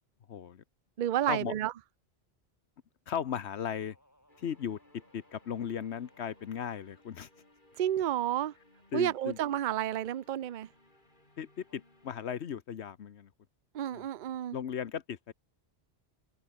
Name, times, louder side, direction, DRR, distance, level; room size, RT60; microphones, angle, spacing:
voice 1, 0.3-0.6 1.3-1.5 3.1-4.0 4.4-7.3 8.9-9.4 11.4-13.3 13.9-14.0 14.5-15.3, left 8 dB, 85° left, 1.2 m, -37 dB
voice 2, 1.0-1.7 7.8-8.5 8.9-10.7 13.7-14.6, right 11 dB, 55° right, 0.7 m, -31 dB
sound 1, 3.8-6.8 11.7-11.8, equal, 15° left, 7.3 m, -66 dB
sound 2, 4.3-12.3, left 1 dB, 50° left, 5.4 m, -64 dB
omnidirectional pair, 1.1 m